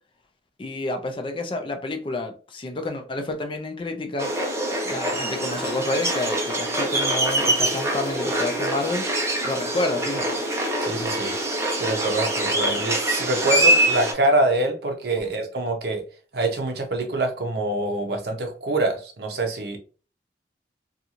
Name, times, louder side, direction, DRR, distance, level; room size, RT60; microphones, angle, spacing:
voice 1, 0.6-4.3 4.9-9.1 9.4-10.2, left 2 dB, 30° left, 0.4 m, -29 dB
sound 1, 4.2-14.1, right 1 dB, 15° right, 0.6 m, -24 dB
voice 2, 10.8-16.0 16.3-19.8, right 2 dB, 60° right, 0.6 m, -25 dB
2.6 x 2.3 x 2.8 m
head